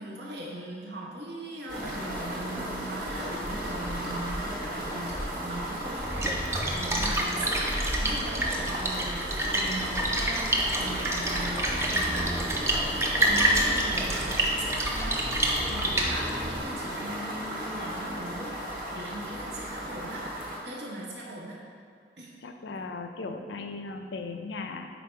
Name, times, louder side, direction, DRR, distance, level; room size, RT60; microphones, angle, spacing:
voice 1, 0.0-12.4 13.1-20.2 20.6-21.6 22.2-22.3, right 1 dB, 75° right, -3 dB, 1.1 m, -39 dB
sound 1, 1.7-20.6, equal, 50° right, 1.3 m, -35 dB
Splash splatter, 6.0-16.6, right 1 dB, 15° right, 0.4 m, -28 dB
voice 2, 22.4-24.9, left 3 dB, 90° left, 6 dB, 0.5 m, -37 dB
5.1 x 4.2 x 4.4 m, 2.2 s
head